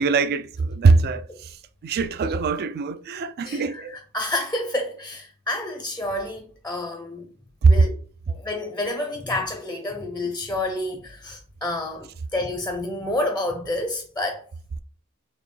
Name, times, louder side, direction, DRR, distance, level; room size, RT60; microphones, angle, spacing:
voice 1, 0.0-1.2 1.8-3.9 7.6-7.7, right 4 dB, 45° right, 0.3 m, -21 dB
voice 2, 3.4-7.3 7.7-7.9 8.3-14.4, left 1 dB, 10° left, 0.5 m, -29 dB
4.2 x 2.8 x 3.2 m
head